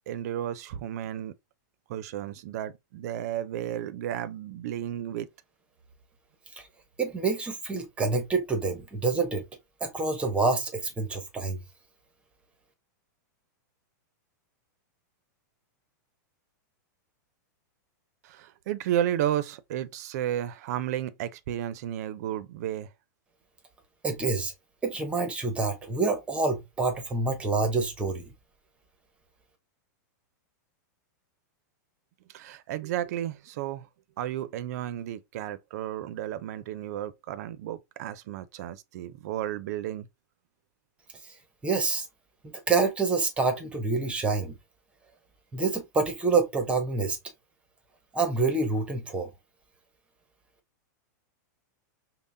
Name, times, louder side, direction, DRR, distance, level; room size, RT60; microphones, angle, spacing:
voice 1, 0.1-1.3 1.9-5.3 18.2-22.9 32.3-33.9 34.2-40.1, right 11 dB, 55° right, 0.5 m, -33 dB
voice 2, 7.0-9.4 9.8-11.6 24.0-24.5 24.8-28.3 41.6-42.1 42.7-44.5 45.5-47.2 48.1-49.3, right 4 dB, 10° right, 0.7 m, -27 dB
5.5 x 2.1 x 2.6 m
supercardioid pair, 155°, 10 cm